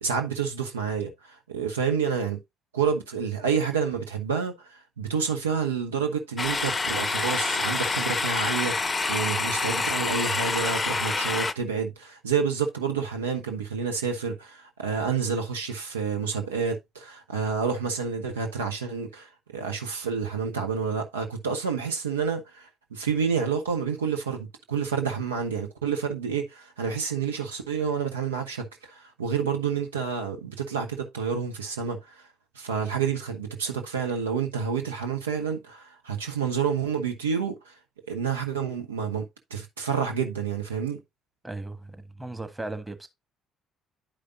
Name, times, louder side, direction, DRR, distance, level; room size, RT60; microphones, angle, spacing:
voice 1, 0.0-2.4 2.7-32.2 32.5-37.7 38.1-41.0, right 6 dB, 80° right, 0.9 m, -29 dB
sound 1, 6.4-11.5, left 3 dB, 25° left, 0.6 m, -27 dB
voice 2, 41.4-43.1, right 2 dB, 10° right, 1.3 m, -36 dB
10.5 x 5.0 x 2.6 m
figure-of-eight pair, 50°, 0 cm